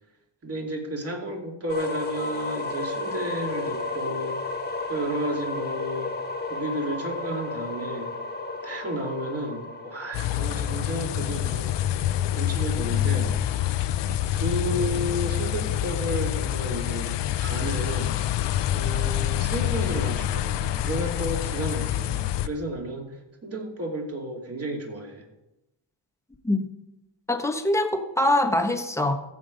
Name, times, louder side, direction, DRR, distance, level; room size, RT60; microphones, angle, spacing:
voice 1, 0.4-4.4 4.9-6.1 6.5-8.1 8.6-11.7 12.0-13.3 14.3-18.1 18.7-23.1 23.4-25.3, right 1 dB, 35° right, 2 dB, 2.7 m, -32 dB
sound 1, 1.7-13.5, left 3 dB, 25° left, 1.5 m, -33 dB
sound 2, 10.1-22.5, left 12 dB, 80° left, 0.8 m, -26 dB
voice 2, 27.3-29.1, left 1 dB, 5° left, 5 dB, 1.3 m, -23 dB
14.5 x 8.5 x 5.2 m, 0.92 s
cardioid pair, 115°, 42 cm